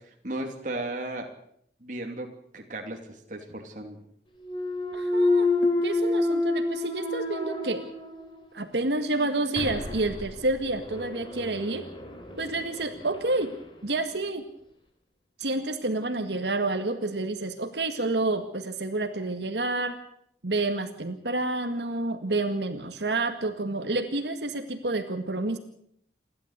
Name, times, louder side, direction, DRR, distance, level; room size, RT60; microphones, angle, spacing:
voice 1, 0.2-1.3 1.8-2.3 2.5-4.0, right 2 dB, 45° right, 2 dB, 2.8 m, -35 dB
Thump thud, 4.4-8.4 8.9-13.6, left 2 dB, 30° left, 3.9 m, -29 dB
voice 2, 4.9-5.5 5.8-7.8 8.5-11.9 12.4-13.5 13.8-14.4 15.4-20.0 20.4-25.6, right 2 dB, 75° right, 7 dB, 1.9 m, -29 dB
28.5 x 12.0 x 8.2 m, 0.70 s
head